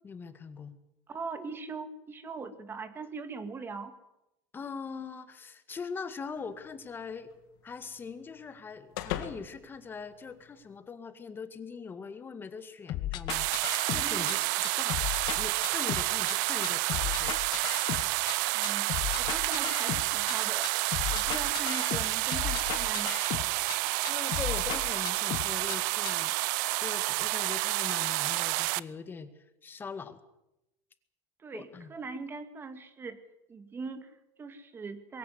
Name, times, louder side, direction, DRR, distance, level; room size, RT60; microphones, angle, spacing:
voice 1, 0.0-0.8 4.5-7.3 7.6-14.5 14.8-15.0 15.4-17.3 24.0-26.3 26.8-29.3 29.6-30.2 31.5-31.9, left 5 dB, 20° left, 10 dB, 2.0 m, -41 dB
voice 2, 1.1-3.9 14.0-14.3 18.5-20.7 21.1-23.2 31.4-33.2 33.5-35.2, right 4 dB, 20° right, 9 dB, 2.2 m, -41 dB
sound 1, 6.4-10.8, left 12 dB, 80° left, 2.4 m, -43 dB
sound 2, 12.9-14.3 14.6-16.3 16.6-18.3 18.6-20.3 20.6-23.8 24.0-25.8 26.0-26.1, left 14 dB, 50° left, 1.2 m, -35 dB
sound 3, 13.3-28.8, right 21 dB, 75° right, 0.7 m, -29 dB
22.5 x 16.0 x 9.8 m, 0.88 s
supercardioid pair, 140°, 10 cm